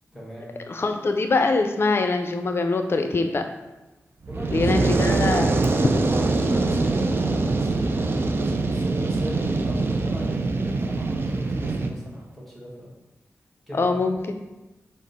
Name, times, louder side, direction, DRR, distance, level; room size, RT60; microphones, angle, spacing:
voice 1, 0.1-0.6 4.3-4.9 6.0-12.9 13.7-14.1, equal, ahead, -5 dB, 1.3 m, -39 dB
voice 2, 0.7-3.5 4.5-5.9 13.7-14.2, left 3 dB, 50° left, 6 dB, 0.4 m, -23 dB
Fire, 4.2-11.9, right 3 dB, 45° right, 0.4 m, -23 dB
5.0 x 2.0 x 4.0 m, 1.0 s
cardioid pair, 60°, 5 cm